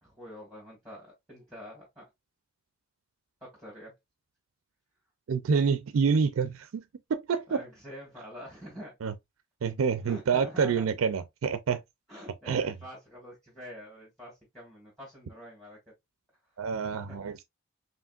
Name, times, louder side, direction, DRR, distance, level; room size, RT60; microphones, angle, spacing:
voice 1, 0.0-2.1 3.4-3.9 7.5-9.0 10.0-10.9 12.1-15.8 16.8-17.2, equal, ahead, 1.6 m, -46 dB
voice 2, 5.3-6.8 7.1-7.6 9.0-9.1 9.6-11.8 12.5-12.7 16.6-17.4, right 6 dB, 80° right, 0.4 m, -27 dB
4.9 x 3.0 x 2.3 m
head